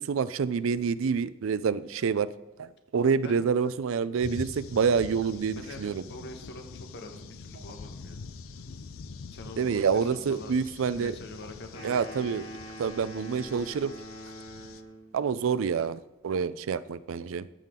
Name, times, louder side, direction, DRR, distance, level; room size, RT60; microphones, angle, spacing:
voice 1, 0.0-2.3 2.6-6.0 9.6-11.1 11.8-12.5 12.8-13.9 15.1-17.5, right 6 dB, 70° right, 16 dB, 0.4 m, -27 dB
sound 1, 4.2-14.8, left 4 dB, 90° left, 0.5 m, -45 dB
voice 2, 5.5-8.2 8.5-8.7 9.3-10.6 10.9-11.9, left 2 dB, 60° left, 5 dB, 1.3 m, -44 dB
sound 2, 11.7-15.1, equal, 30° left, 2.3 m, -43 dB
14.5 x 5.8 x 3.7 m, 1.0 s
head